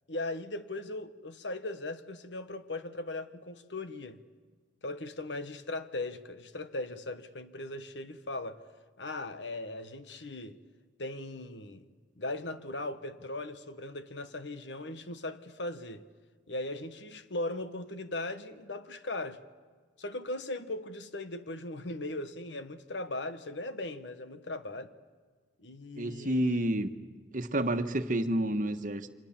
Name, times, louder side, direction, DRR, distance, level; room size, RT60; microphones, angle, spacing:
voice 1, 0.1-4.2 4.8-8.6 9.0-10.6 11.0-11.8 12.2-16.0 16.5-19.4 20.0-24.9 25.6-26.7, left 2 dB, 75° left, 1.4 m, -38 dB
voice 2, 26.0-26.9 27.3-29.1, right 1 dB, 45° right, 1.4 m, -29 dB
29.5 x 25.5 x 7.3 m
head